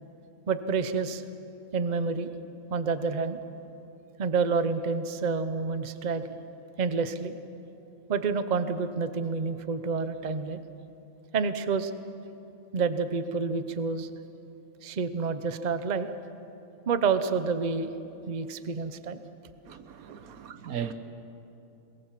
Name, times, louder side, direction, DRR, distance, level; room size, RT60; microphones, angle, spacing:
voice 1, 0.5-1.2 1.7-2.3 2.7-3.4 4.2-6.2 6.8-7.3 8.1-10.6 11.3-11.9 12.7-14.1 14.8-16.1 16.9-17.9 18.3-19.2, right 5 dB, 35° right, 0.8 m, -28 dB
voice 2, 19.7-20.9, right 8 dB, 80° right, 1.4 m, -37 dB
22.0 x 20.5 x 7.4 m
omnidirectional pair, 1.5 m